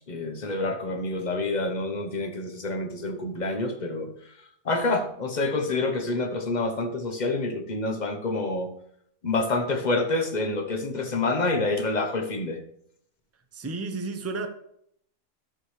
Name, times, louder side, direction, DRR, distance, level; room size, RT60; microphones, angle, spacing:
voice 1, 0.1-4.1 4.6-8.7 9.2-12.6, left 2 dB, 35° left, 0.9 m, -27 dB
voice 2, 13.5-14.5, right 3 dB, 15° right, 0.5 m, -32 dB
12.5 x 6.6 x 3.2 m
omnidirectional pair, 1.6 m